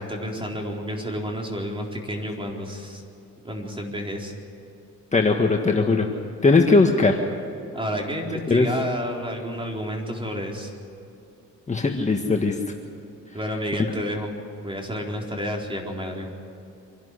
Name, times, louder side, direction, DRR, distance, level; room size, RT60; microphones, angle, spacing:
voice 1, 0.0-3.0 3.4-4.3 7.7-10.7 13.3-14.3 14.6-16.3, equal, 15° right, 0 dB, 4.3 m, -30 dB
voice 2, 5.1-6.1 6.4-7.2 8.5-8.7 11.7-12.6, left 3 dB, 25° left, 2 dB, 1.7 m, -19 dB
25.5 x 12.0 x 9.9 m, 2.7 s
cardioid pair, 90°, 30 cm